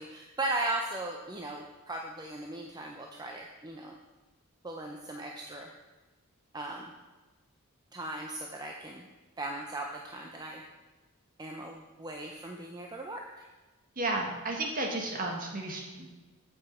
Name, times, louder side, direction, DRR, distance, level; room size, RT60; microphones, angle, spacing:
voice 1, 0.0-3.9 4.6-5.7 6.5-6.9 7.9-9.0 9.4-10.6 11.4-13.5, right 2 dB, 20° right, 1 dB, 0.6 m, -37 dB
voice 2, 13.9-16.1, right 2 dB, 40° right, 1 dB, 1.5 m, -33 dB
9.1 x 7.8 x 4.3 m, 1.2 s
head